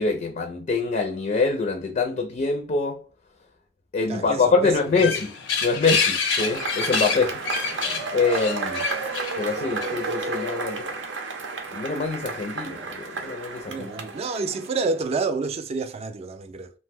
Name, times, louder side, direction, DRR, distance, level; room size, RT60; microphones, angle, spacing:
voice 1, 0.0-3.0 3.9-5.3 5.6-7.4 7.9-8.9 9.4-10.9 11.7-13.9, left 4 dB, 40° left, 0.4 m, -25 dB
voice 2, 4.1-5.1 7.1-7.2 13.7-16.7, right 4 dB, 35° right, 0.3 m, -29 dB
sound 1, 4.8-10.1, left 5 dB, 90° left, 0.6 m, -27 dB
Cheering / Applause / Crowd, 6.3-15.0, right 3 dB, 85° right, 0.6 m, -32 dB
2.6 x 2.1 x 3.3 m
head